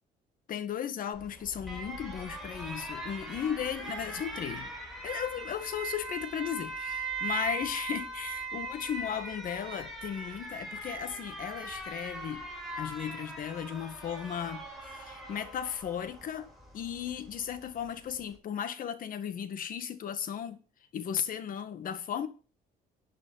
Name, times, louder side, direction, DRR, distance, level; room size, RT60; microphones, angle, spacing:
voice 1, 0.5-4.7 5.0-12.4 12.8-20.6 20.9-22.3, left 9 dB, 55° left, 1.7 m, -36 dB
Alarm, 1.1-18.4, right 2 dB, ahead, 5.1 m, -40 dB
12.5 x 8.7 x 4.0 m
cardioid pair, 110°, 17 cm